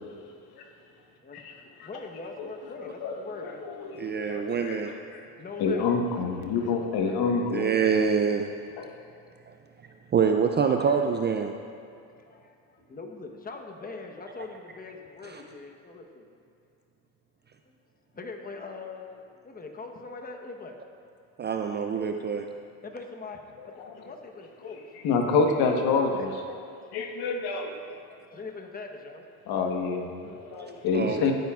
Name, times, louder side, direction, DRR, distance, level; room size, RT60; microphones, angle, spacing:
voice 1, 1.2-4.0 5.4-5.9 6.2-7.7 10.5-10.9 11.9-16.3 17.7-17.8 18.1-20.8 22.8-24.8 25.6-26.7 27.1-27.3 28.3-29.5 30.3-30.7, left 3 dB, 20° left, 3 dB, 1.1 m, -43 dB
voice 2, 2.8-5.2 5.6-7.7 8.8-8.9 23.6-24.0 24.6-24.8 25.0-26.7 26.9-27.7 29.5-31.3, left 4 dB, 60° left, 3 dB, 1.3 m, -28 dB
voice 3, 3.9-4.9 7.5-8.5 9.5-9.6 10.1-11.5 15.2-15.4 21.4-22.5 30.9-31.3, right 6 dB, 25° right, 5 dB, 0.4 m, -25 dB
16.0 x 9.2 x 2.4 m, 2.4 s
supercardioid pair, 100°, 41 cm